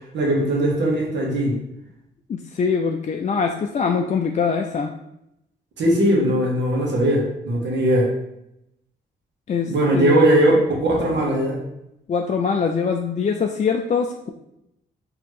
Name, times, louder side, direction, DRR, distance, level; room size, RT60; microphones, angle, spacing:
voice 1, 0.1-1.6 5.8-8.1 9.7-11.6, right 1 dB, 75° right, -2 dB, 1.2 m, -19 dB
voice 2, 2.3-4.9 9.5-10.6 12.1-14.3, left 5 dB, 40° left, 3 dB, 0.4 m, -23 dB
4.2 x 2.9 x 3.1 m, 0.83 s
cardioid pair, 65°, 19 cm